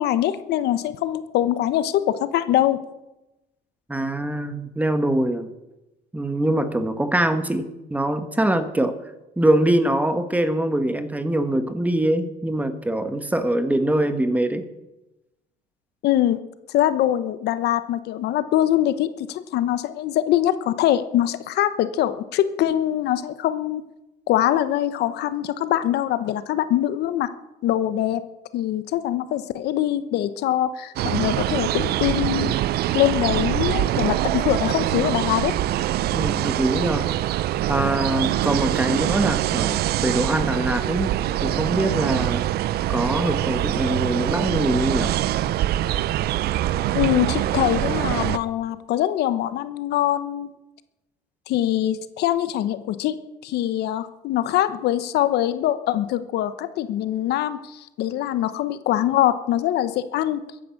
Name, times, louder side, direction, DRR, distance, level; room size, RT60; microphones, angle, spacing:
voice 1, 0.0-2.8 16.0-16.4 16.7-23.8 24.3-27.3 27.6-28.2 28.5-32.5 32.9-35.5 46.9-50.5 51.5-53.1 53.4-60.4, left 12 dB, 75° left, 13 dB, 1.0 m, -23 dB
voice 2, 3.9-5.5 6.1-8.9 9.4-14.6 36.1-41.1 41.4-42.4 42.9-45.2, right 1 dB, 10° right, 9 dB, 1.4 m, -23 dB
sound 1, 31.0-48.4, right 13 dB, 70° right, 0.6 m, -24 dB
15.0 x 10.5 x 7.2 m, 0.96 s
cardioid pair, 110°, 17 cm